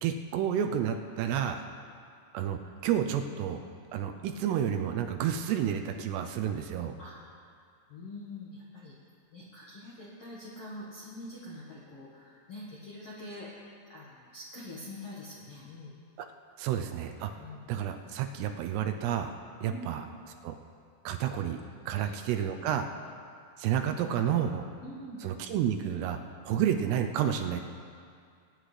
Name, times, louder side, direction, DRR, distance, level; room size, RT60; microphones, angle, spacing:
voice 1, 0.0-1.6 2.3-3.6 3.9-6.9 16.6-19.4 19.6-20.1 20.4-20.6 21.0-22.9 23.6-24.7 25.2-26.2 26.4-27.6, right 9 dB, 85° right, 6 dB, 2.6 m, -30 dB
voice 2, 7.9-8.9 9.3-13.5 13.9-16.0 17.3-17.8 19.6-19.9 22.0-22.1 24.8-25.2 26.5-26.6, left 1 dB, 70° left, -6 dB, 1.4 m, -44 dB
21.0 x 9.9 x 3.3 m, 2.2 s
omnidirectional pair, 5.0 m